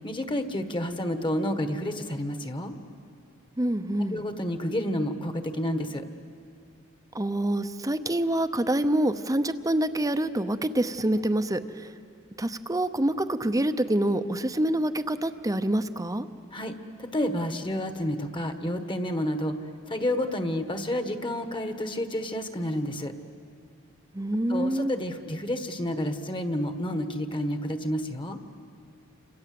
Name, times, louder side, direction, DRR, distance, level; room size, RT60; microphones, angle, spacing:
voice 1, 0.0-2.7 4.1-6.0 16.5-19.6 19.9-23.1 24.5-28.4, left 1 dB, 25° left, 8 dB, 1.4 m, -30 dB
voice 2, 3.6-4.2 7.1-11.9 12.4-16.3 24.1-25.0, right 1 dB, 15° right, 10 dB, 0.8 m, -26 dB
29.5 x 26.5 x 7.8 m, 2.4 s
head